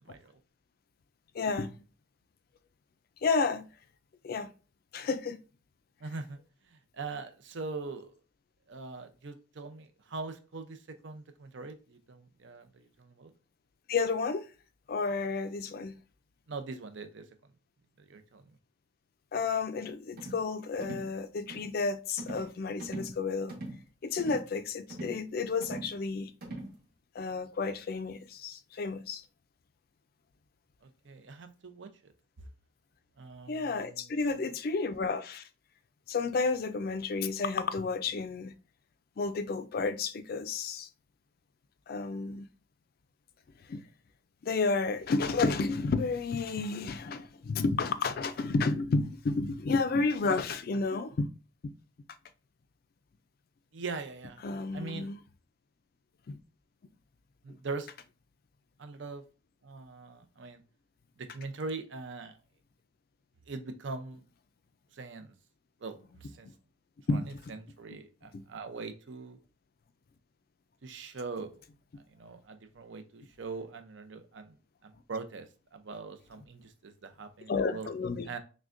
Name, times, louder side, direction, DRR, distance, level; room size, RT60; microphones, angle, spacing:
voice 1, 0.0-0.3 6.0-6.4 6.6-8.1 8.7-13.3 16.5-17.3 18.0-18.4 30.8-32.1 32.4-32.5 33.2-34.2 53.7-54.4 54.7-55.1 57.4-57.9 58.8-59.2 59.6-60.6 61.2-62.4 63.5-64.2 64.9-65.3 65.8-66.5 67.1-69.4 70.8-71.6 72.1-74.6 74.8-77.9 78.3-78.4, right 4 dB, 65° right, 0.6 m, -42 dB
voice 2, 1.3-1.7 3.2-3.7 4.2-4.5 4.9-5.4 13.9-14.4 14.9-16.0 19.3-23.6 24.0-26.3 27.1-29.2 33.5-35.5 36.1-38.5 39.2-40.9 41.9-42.5 43.7-43.8 44.4-51.3 51.6-51.7 54.4-55.2 56.3-56.4 66.5-66.6 67.1-67.3 68.3-68.4 77.5-78.4, left 4 dB, 50° left, 0.3 m, -31 dB
sound 1, 20.2-20.4 20.8-21.1 21.5-21.7 22.2-22.5 22.8-23.2 23.5-23.8 24.2-24.5 24.9-25.2 25.6-25.9 26.4-26.7, right 2 dB, 50° right, 1.2 m, -41 dB
6.1 x 2.2 x 2.5 m
head